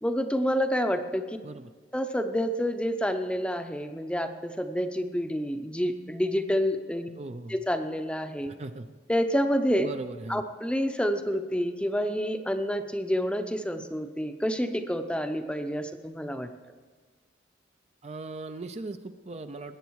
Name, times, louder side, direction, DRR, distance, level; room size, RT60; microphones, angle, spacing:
voice 1, 0.0-1.4 1.9-7.1 7.5-8.5 9.1-9.9 10.3-16.5, equal, 5° left, 7 dB, 0.7 m, -28 dB
voice 2, 7.1-7.6 8.6-8.9 9.8-10.4 18.0-19.8, right 2 dB, 35° right, 8 dB, 0.5 m, -38 dB
20.0 x 9.2 x 4.7 m, 1.5 s
head